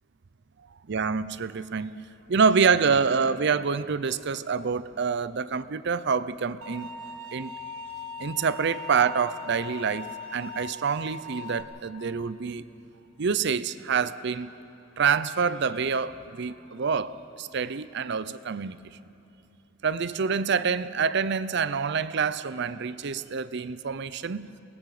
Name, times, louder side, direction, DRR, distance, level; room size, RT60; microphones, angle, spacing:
voice 1, 0.9-6.9 7.3-7.5 8.2-12.7 13.2-14.5 15.0-18.8 19.8-24.5, right 6 dB, 60° right, 15 dB, 0.6 m, -27 dB
sound 1, 6.6-11.6, left 3 dB, 85° right, 1.5 m, -40 dB
27.5 x 20.0 x 4.9 m, 2.9 s
head